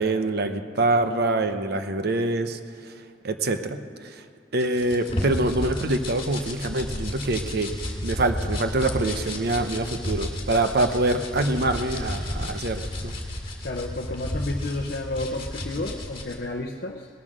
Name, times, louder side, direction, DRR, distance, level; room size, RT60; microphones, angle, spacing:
voice 1, 0.0-2.6 3.2-3.8 4.0-4.2 4.5-7.7 8.0-13.2, right 2 dB, 60° right, 8 dB, 0.8 m, -25 dB
sound 1, 4.6-16.3, left 1 dB, 30° left, 1.9 m, -32 dB
voice 2, 13.6-17.1, left 2 dB, 55° left, 1 dB, 0.7 m, -31 dB
19.5 x 7.3 x 6.5 m, 2.4 s
head